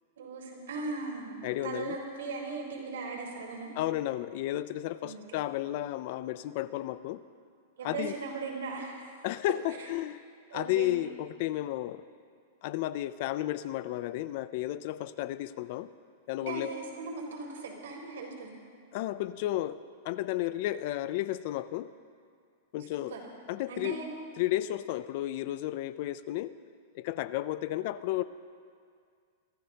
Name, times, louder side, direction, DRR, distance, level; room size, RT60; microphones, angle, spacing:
voice 1, 0.2-3.7 5.0-5.2 7.8-9.1 9.8-9.9 10.5-10.9 16.4-18.5 22.9-23.2 23.7-24.1, right 4 dB, 90° right, -2 dB, 4.2 m, -38 dB
voice 2, 1.4-2.0 3.8-7.2 7.8-8.1 9.2-10.2 10.5-12.0 12.6-15.9 16.3-16.7 18.9-19.8 20.0-21.9 22.7-23.2 23.5-24.0 24.4-26.5 26.9-28.2, left 14 dB, 45° left, 15 dB, 0.4 m, -32 dB
24.0 x 14.5 x 2.9 m, 2.1 s
supercardioid pair, 160°, 0 cm